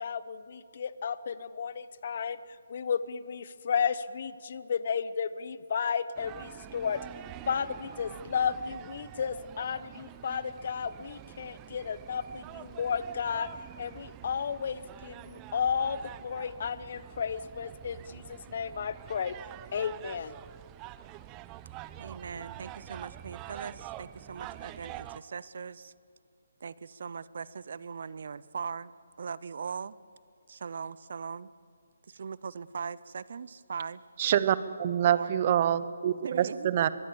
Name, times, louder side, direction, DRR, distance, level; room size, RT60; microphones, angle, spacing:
voice 1, 0.0-2.4 2.7-7.0 7.5-13.5 13.8-19.4 19.7-20.4 22.3-22.4, left 7 dB, 50° left, 16 dB, 0.9 m, -33 dB
sound 1, 6.2-25.2, right 14 dB, 20° right, 0.6 m, -46 dB
voice 2, 22.0-25.9 26.6-28.9 29.2-30.0 30.5-31.5 32.1-34.0 35.1-35.3 36.2-36.7, right 6 dB, 55° right, 19 dB, 0.6 m, -40 dB
voice 3, 34.2-36.9, right 10 dB, 35° right, 15 dB, 1.0 m, -26 dB
24.0 x 22.0 x 7.1 m, 2.2 s
figure-of-eight pair, 145°, 0 cm